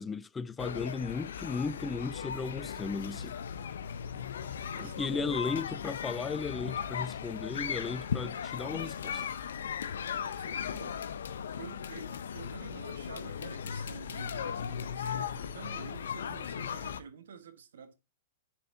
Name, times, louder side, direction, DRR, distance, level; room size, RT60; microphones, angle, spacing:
voice 1, 0.0-3.3 4.8-9.2, left 4 dB, 10° left, 0.3 m, -35 dB
sound 1, 0.6-17.0, left 7 dB, 90° left, 0.6 m, -37 dB
voice 2, 4.7-5.5 10.1-11.0 11.6-17.9, right 6 dB, 90° right, 1.3 m, -49 dB
10.5 x 4.2 x 2.6 m
hypercardioid pair, 150°, 0 cm